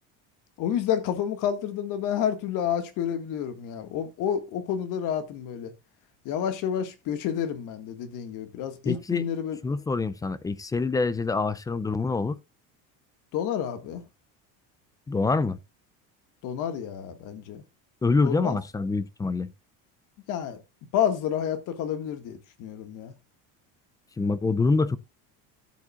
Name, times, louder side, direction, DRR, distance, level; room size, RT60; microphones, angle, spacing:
voice 1, 0.6-5.7 6.3-9.6 13.3-14.0 16.4-17.6 18.2-18.6 20.3-20.6 20.9-23.2, left 9 dB, 60° left, 1.9 m, -29 dB
voice 2, 8.9-9.3 9.6-12.4 15.1-15.6 18.0-19.5 24.2-25.0, left 3 dB, 10° left, 0.4 m, -25 dB
13.0 x 7.5 x 2.4 m
cardioid pair, 140°, 36 cm